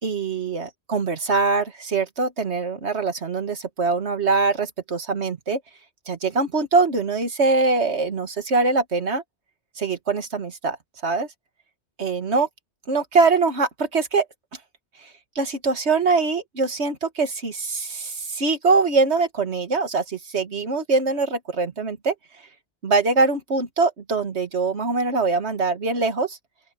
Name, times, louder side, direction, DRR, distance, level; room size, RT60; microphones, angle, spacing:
voice 1, 0.0-5.6 6.1-9.2 9.8-10.8 11.0-11.3 12.0-12.5 12.9-14.3 15.4-22.1 22.8-26.4, right 4 dB, 70° right, 2.1 m, -23 dB
open air
omnidirectional pair, 1.2 m